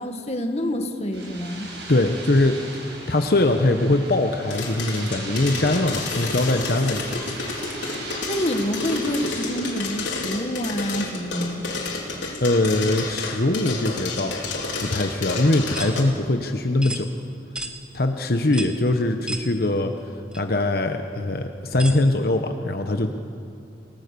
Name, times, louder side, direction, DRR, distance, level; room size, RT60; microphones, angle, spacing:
voice 1, 0.0-1.7 8.3-11.6, equal, 35° left, 5 dB, 1.7 m, -27 dB
sound 1, 1.1-9.8, right 2 dB, 70° right, 6.9 m, -38 dB
voice 2, 1.9-7.2 12.4-14.3 14.8-17.1 17.9-19.9 20.3-23.1, left 2 dB, 55° left, 5 dB, 1.0 m, -22 dB
sound 2, 4.5-16.0, left 3 dB, 90° left, 4.0 m, -30 dB
sound 3, 15.7-16.0 16.8-17.0 17.6-17.8 18.5-18.8 19.3-19.5 20.3-20.4 21.8-22.0, right 2 dB, 5° right, 1.3 m, -32 dB
28.5 x 18.5 x 6.9 m, 2.6 s
head